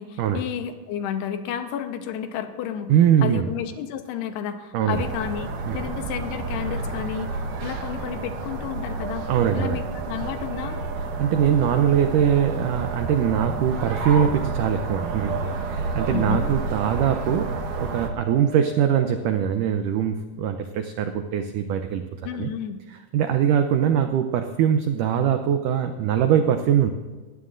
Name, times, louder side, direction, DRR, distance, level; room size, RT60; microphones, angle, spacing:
voice 1, 0.0-2.9 3.2-9.3 9.5-10.8 16.1-16.6 22.2-22.8, left 9 dB, 85° left, 7 dB, 3.0 m, -31 dB
voice 2, 2.9-3.5 4.7-5.0 5.7-5.8 9.3-9.8 11.2-22.0 22.3-22.5 23.1-26.9, right 9 dB, 90° right, 7 dB, 1.8 m, -22 dB
sound 1, 4.9-18.1, right 3 dB, 65° right, 2.6 m, -30 dB
sound 2, 9.0-19.0, right 6 dB, 25° right, 5.0 m, -41 dB
21.0 x 15.0 x 2.6 m, 1.4 s
omnidirectional pair, 4.6 m